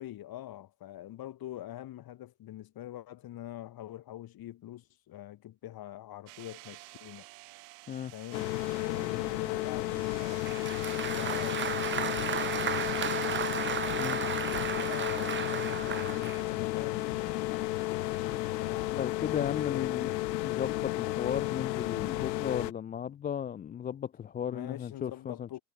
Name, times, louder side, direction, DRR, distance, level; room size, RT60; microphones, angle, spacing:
voice 1, 0.0-7.3 8.1-13.4 14.7-18.9 19.7-19.9 24.5-25.6, left 13 dB, 45° left, 4.3 m, -44 dB
sound 1, 6.3-18.9, right 32 dB, 70° right, 1.7 m, -52 dB
sound 2, 8.3-22.7, left 17 dB, 85° left, 1.1 m, -33 dB
Applause, 10.5-16.5, right 8 dB, 25° right, 1.1 m, -34 dB
voice 2, 18.9-25.6, left 9 dB, 20° left, 0.4 m, -35 dB
hypercardioid pair, 95°, 49 cm